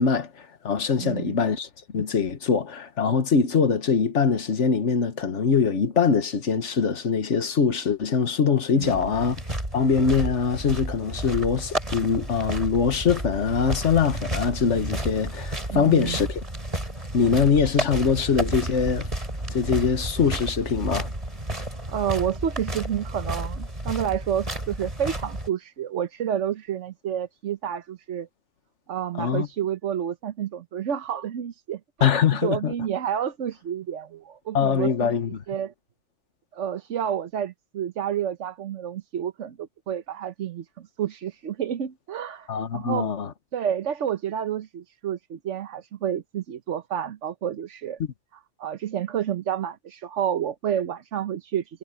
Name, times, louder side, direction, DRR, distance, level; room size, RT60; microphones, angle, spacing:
voice 1, 0.0-1.7 1.9-9.4 9.7-16.4 17.1-19.1 19.5-21.1 29.2-29.5 32.0-32.7 34.5-35.4 42.5-43.3, left 6 dB, 80° left, 1.6 m, -23 dB
voice 2, 1.0-1.4 8.7-9.1 15.7-16.2 21.9-28.3 28.9-32.1 32.4-35.1 35.5-35.7 36.5-43.1 43.5-48.0 48.6-51.8, right 9 dB, 85° right, 1.2 m, -29 dB
sound 1, 8.8-25.5, right 1 dB, 30° right, 4.1 m, -32 dB
omnidirectional pair, 1.2 m